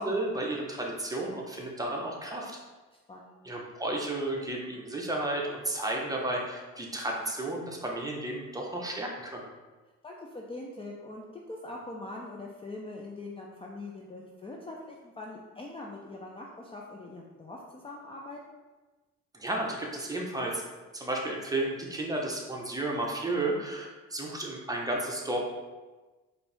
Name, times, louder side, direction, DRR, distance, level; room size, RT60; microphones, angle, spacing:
voice 1, 0.0-2.6 3.4-9.4 19.3-20.6 20.9-25.4, right 2 dB, 10° right, -1 dB, 0.8 m, -32 dB
voice 2, 3.1-3.4 10.0-18.4, left 2 dB, 20° left, -2 dB, 0.4 m, -42 dB
4.4 x 2.6 x 3.3 m, 1.2 s
cardioid pair, 90°, 30 cm